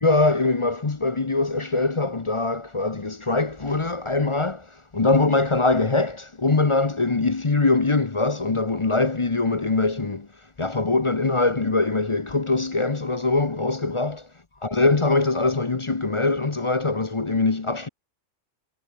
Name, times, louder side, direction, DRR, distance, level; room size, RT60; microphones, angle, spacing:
voice 1, 0.0-4.7 4.9-10.3 10.6-14.3 14.6-17.9, left 3 dB, 25° left, 0.8 m, -22 dB
omnidirectional pair, 1.5 m